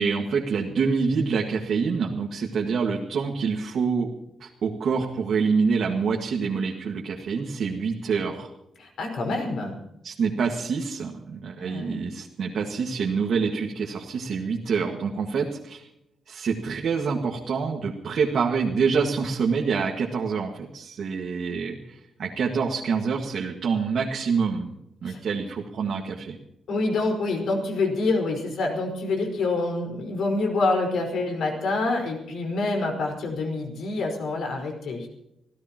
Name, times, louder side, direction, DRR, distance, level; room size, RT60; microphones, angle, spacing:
voice 1, 0.0-4.1 4.4-8.5 10.0-15.9 16.3-24.7 25.0-26.4, right 5 dB, 60° right, 0 dB, 1.8 m, -26 dB
voice 2, 8.8-9.8 11.6-12.0 25.0-25.2 26.7-35.1, left 3 dB, 70° left, 2 dB, 4.9 m, -26 dB
26.5 x 16.0 x 3.0 m, 0.83 s
wide cardioid pair, 150°, 0 cm